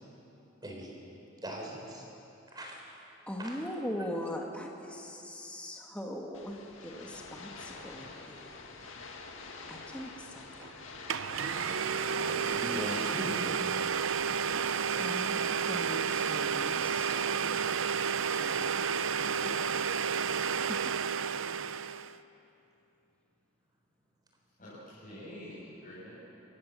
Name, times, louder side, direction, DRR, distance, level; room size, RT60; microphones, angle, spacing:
voice 1, 1.4-2.0 2.5-2.8 3.4-3.6 12.1-13.7, right 1 dB, 20° right, 0 dB, 4.0 m, -39 dB
voice 2, 3.3-8.6 9.1-9.3 9.7-10.9 15.0-17.6 18.4-18.7 19.4-19.9 20.7-20.8 21.4-21.6, equal, 5° left, 0 dB, 1.6 m, -41 dB
sound 1, 6.3-14.6, left 3 dB, 80° left, 2.1 m, -47 dB
Domestic sounds home sounds, 10.6-10.7 11.1-22.1, right 6 dB, 75° right, 0.5 m, -31 dB
voice 3, 24.6-26.2, equal, 45° left, -10 dB, 6.9 m, -46 dB
28.0 x 15.0 x 7.3 m, 2.8 s
head